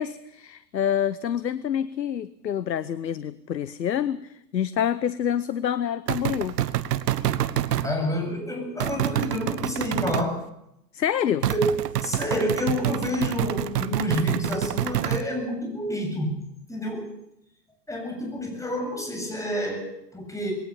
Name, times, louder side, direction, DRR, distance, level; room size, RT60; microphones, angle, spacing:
voice 1, 0.0-6.6 10.9-11.5, left 9 dB, 90° left, 17 dB, 0.9 m, -27 dB
sound 1, 6.1-7.9 8.8-10.3 11.4-15.3, right 12 dB, 70° right, 1.3 m, -27 dB
voice 2, 7.8-10.5 11.5-16.4 16.7-17.2 17.9-20.5, equal, 5° left, 2 dB, 7.9 m, -28 dB
20.5 x 18.5 x 7.5 m, 0.82 s
hypercardioid pair, 100°, 49 cm